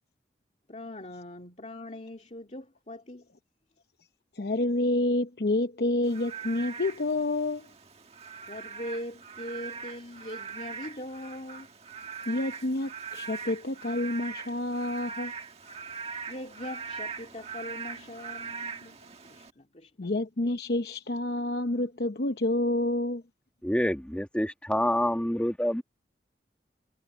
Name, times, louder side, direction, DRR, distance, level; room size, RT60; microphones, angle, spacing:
voice 1, 0.7-3.3 8.5-11.7 16.3-19.0 19.2-20.1, left 1 dB, 40° left, 2.3 m, -41 dB
voice 2, 4.4-7.7 12.3-15.3 20.0-23.2, left 2 dB, 65° left, 0.8 m, -28 dB
Frog / Rain, 6.0-19.5, right 5 dB, 35° right, 1.8 m, -41 dB
voice 3, 23.6-25.8, equal, 5° left, 1.4 m, -27 dB
head